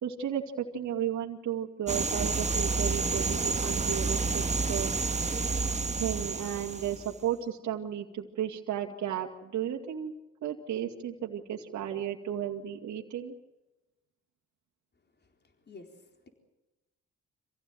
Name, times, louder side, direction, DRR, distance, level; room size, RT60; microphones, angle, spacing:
voice 1, 0.0-4.4 4.7-4.9 6.0-10.1 10.4-13.3, right 10 dB, 70° right, 1 dB, 2.4 m, -34 dB
sound 1, 1.9-7.1, right 3 dB, 25° right, 1.6 m, -30 dB
voice 2, 15.2-16.3, left 3 dB, 35° left, 4 dB, 4.3 m, -53 dB
26.0 x 16.0 x 9.4 m, 1.0 s
cardioid pair, 90°, 30 cm